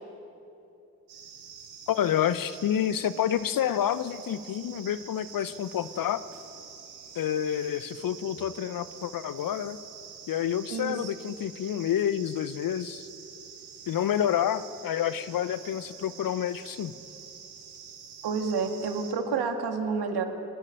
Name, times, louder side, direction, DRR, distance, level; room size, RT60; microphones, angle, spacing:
sound 1, 1.1-19.1, right 7 dB, 75° right, 2.5 m, -47 dB
voice 1, 1.9-6.2 7.2-9.8 10.3-13.1 13.9-16.9, left 10 dB, 50° left, 15 dB, 0.8 m, -28 dB
voice 2, 10.7-11.1 18.2-20.2, right 5 dB, 60° right, 5 dB, 2.3 m, -29 dB
26.5 x 10.5 x 9.0 m, 2.9 s
hypercardioid pair, 45°, 43 cm